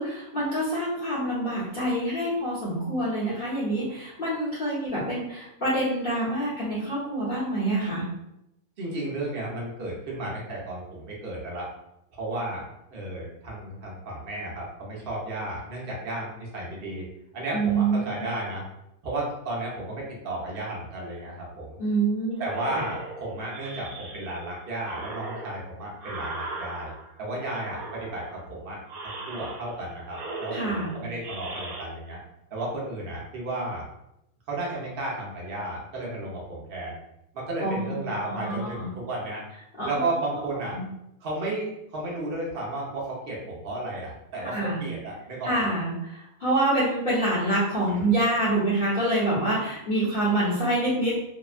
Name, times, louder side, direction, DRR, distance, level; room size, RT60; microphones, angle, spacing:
voice 1, 0.0-8.1 17.5-18.0 21.8-22.4 30.5-31.0 37.6-37.9 38.4-38.9 39.8-39.9 40.7-40.8 44.4-44.8 45.4-51.2, right 1 dB, 40° left, -11 dB, 0.9 m, -26 dB
voice 2, 8.8-11.7 12.1-12.6 12.9-17.1 17.3-18.7 19.0-21.8 22.4-26.9 27.2-32.2 32.5-33.9 34.5-36.9 37.3-39.4 39.8-40.8 41.2-45.7 47.9-48.1, right 2 dB, 50° right, -4 dB, 0.8 m, -33 dB
sound 1, 22.4-24.5 24.8-27.2 27.6-28.5 28.9-29.8 30.1-31.9, right 2 dB, 75° right, 1.1 m, -38 dB
2.8 x 2.1 x 2.4 m, 0.84 s
omnidirectional pair, 1.6 m